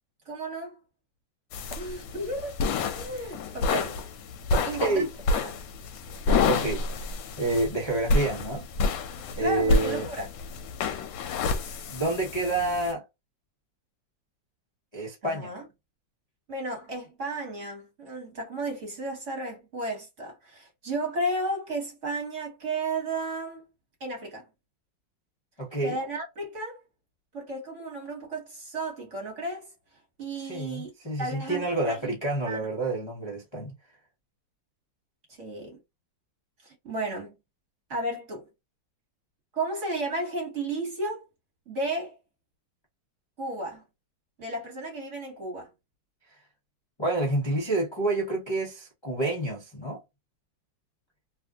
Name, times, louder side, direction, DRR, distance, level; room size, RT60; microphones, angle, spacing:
voice 1, 0.2-0.8 1.8-2.6 2.9-4.0 4.6-5.5 9.4-10.3 15.2-15.6 16.5-23.6 24.0-24.5 25.8-26.8 27.3-29.7 30.2-30.9 31.2-32.0 32.5-32.7 35.4-35.8 36.8-37.3 37.9-38.5 39.5-41.2 41.7-42.1 43.4-43.8 44.4-45.7, right 2 dB, 40° right, 1.6 m, -33 dB
sound 1, 1.5-12.9, left 3 dB, 80° left, 1.3 m, -29 dB
voice 2, 4.5-5.1 6.5-7.1 7.4-8.6 9.4-10.1 11.9-13.0 14.9-15.5 25.6-26.0 30.3-33.7 47.0-50.0, right 2 dB, 30° left, 0.5 m, -28 dB
3.2 x 2.5 x 2.3 m
omnidirectional pair, 2.1 m